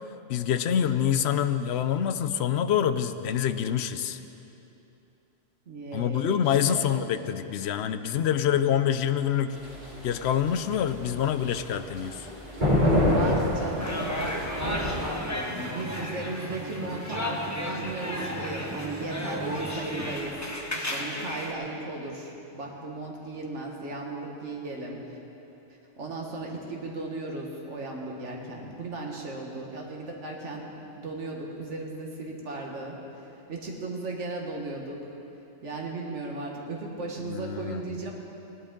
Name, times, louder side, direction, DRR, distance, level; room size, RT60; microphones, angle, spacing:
voice 1, 0.3-4.2 5.9-9.6 10.0-12.3 37.3-38.0, left 9 dB, 65° left, 11 dB, 0.8 m, -26 dB
voice 2, 5.7-6.8 13.0-20.4 20.7-25.2 26.0-35.0 35.6-38.1, right 2 dB, 70° right, -1 dB, 1.9 m, -36 dB
sound 1, 9.5-15.2, left 1 dB, 40° right, 2.6 m, -27 dB
sound 2, 13.8-21.5, left 1 dB, 15° left, 1.0 m, -34 dB
Acoustic guitar, 15.2-20.3, right 2 dB, 20° right, 0.3 m, -39 dB
18.0 x 11.0 x 3.8 m, 2.9 s
omnidirectional pair, 1.2 m